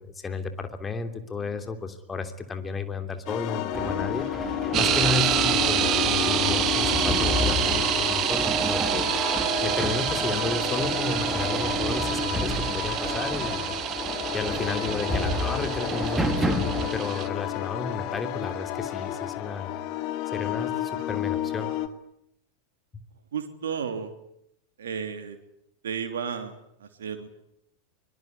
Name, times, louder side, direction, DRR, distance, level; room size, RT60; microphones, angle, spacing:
voice 1, 0.0-4.3 4.7-9.1 9.6-13.7 14.3-19.7 20.3-21.7, left 4 dB, 15° left, 7 dB, 3.0 m, -33 dB
sound 1, 3.3-21.9, left 12 dB, 40° left, 2.5 m, -32 dB
sound 2, 3.7-16.9, right 1 dB, 5° right, 3.0 m, -31 dB
sound 3, 4.7-17.3, right 11 dB, 35° right, 1.8 m, -28 dB
voice 2, 23.3-24.2 24.8-25.4 25.8-27.3, right 7 dB, 65° right, 6 dB, 3.1 m, -33 dB
23.5 x 23.0 x 9.7 m, 0.76 s
figure-of-eight pair, 90°, 0 cm